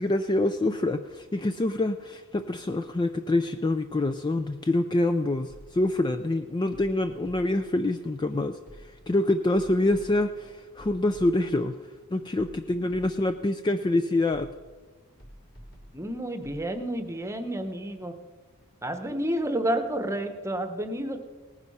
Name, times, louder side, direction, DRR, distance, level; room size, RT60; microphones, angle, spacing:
voice 1, 0.0-8.6 9.1-11.8 12.1-14.5, left 2 dB, 20° left, 9 dB, 0.4 m, -26 dB
sound 1, 5.5-6.0 6.7-7.8 8.7-9.2 9.5-11.7 12.4-13.4 14.3-14.8 15.2-16.7, equal, 45° left, 4.1 m, -50 dB
voice 2, 15.9-18.1 18.8-21.2, right 1 dB, 15° right, 8 dB, 1.0 m, -30 dB
18.5 x 9.8 x 5.5 m, 1.4 s
head